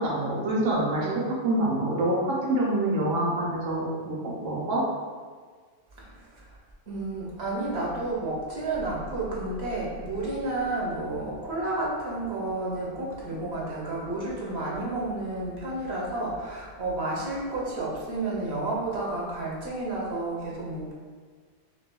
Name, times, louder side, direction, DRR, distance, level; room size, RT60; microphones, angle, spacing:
voice 1, 0.0-4.8, right 1 dB, 85° right, -5 dB, 1.2 m, -26 dB
voice 2, 6.0-6.6 6.9-20.9, right 2 dB, 60° right, -4 dB, 1.2 m, -31 dB
6.0 x 2.7 x 2.2 m, 1.5 s
omnidirectional pair, 1.3 m